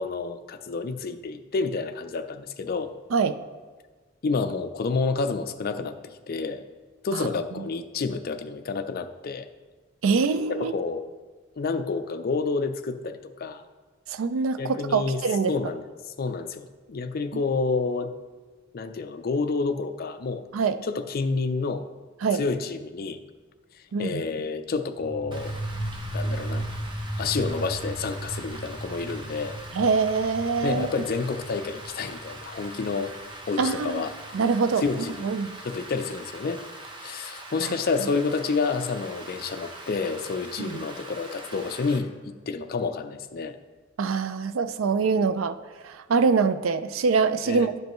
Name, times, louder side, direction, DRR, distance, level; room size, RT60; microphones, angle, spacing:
voice 1, 0.0-2.9 4.2-6.6 7.0-9.5 10.5-11.1 11.6-13.6 14.6-15.2 15.5-15.9 16.2-18.1 18.7-20.4 20.8-21.8 22.3-23.2 24.0-25.5 26.1-26.7 27.2-29.6 30.6-33.1 33.5-34.1 34.8-35.2 35.6-36.6 37.0-43.6 47.5-47.7, left 4 dB, 50° left, 9 dB, 0.4 m, -29 dB
voice 2, 10.0-10.7 14.1-15.5 17.3-17.4 20.5-20.8 22.2-22.4 23.9-24.2 29.7-30.9 33.6-34.0 34.3-34.8 35.2-35.6 37.6-37.7 40.6-40.9 44.0-45.6 45.8-47.7, right 5 dB, 85° right, 12 dB, 0.4 m, -24 dB
sound 1, 25.0-33.4, right 1 dB, 10° left, 1.0 m, -35 dB
Rain, 25.3-42.0, right 2 dB, 25° right, 0.8 m, -43 dB
11.0 x 5.3 x 3.0 m, 1.4 s
head